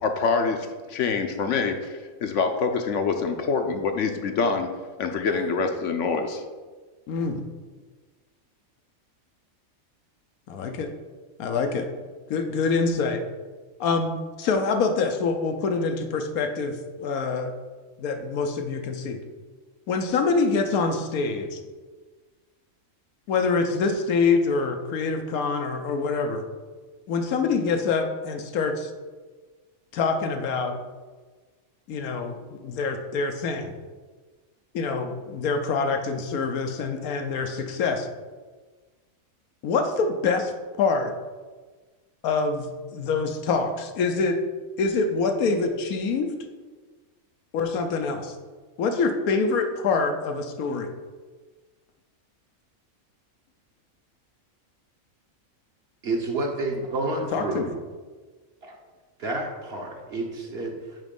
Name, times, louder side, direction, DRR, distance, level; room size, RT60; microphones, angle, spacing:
voice 1, 0.0-4.7 5.0-6.4, left 5 dB, 65° left, 5 dB, 0.9 m, -25 dB
voice 2, 7.1-7.5 10.5-10.9 11.4-11.9 12.3-13.2 13.8-17.5 18.0-19.2 19.9-21.6 23.3-26.4 27.1-28.9 29.9-30.8 31.9-33.7 34.7-38.1 39.6-40.5 40.8-41.1 42.2-44.4 44.8-46.3 47.5-48.3 48.8-50.9 57.3-57.7, left 4 dB, 90° left, 6 dB, 1.2 m, -25 dB
voice 3, 56.0-57.7 58.6-58.8 59.2-61.0, right 2 dB, 50° right, 1 dB, 1.2 m, -29 dB
9.2 x 3.1 x 5.3 m, 1.4 s
omnidirectional pair, 1.5 m